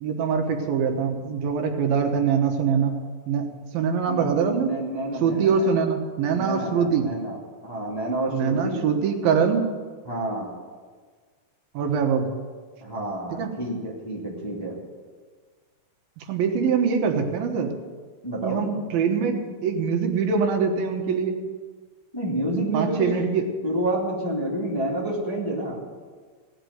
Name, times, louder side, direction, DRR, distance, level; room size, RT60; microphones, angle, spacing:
voice 1, 0.0-3.0 3.3-4.7 5.2-7.1 8.3-9.6 11.7-12.3 13.3-13.5 16.2-17.7 18.4-21.4 22.7-23.5, right 6 dB, 85° right, 4 dB, 3.2 m, -23 dB
voice 2, 4.1-5.7 6.3-8.8 10.0-10.5 12.8-14.7 18.2-18.6 22.1-23.1 23.6-25.8, right 1 dB, 10° left, -4 dB, 1.6 m, -29 dB
17.5 x 6.0 x 9.3 m, 1.5 s
omnidirectional pair, 4.1 m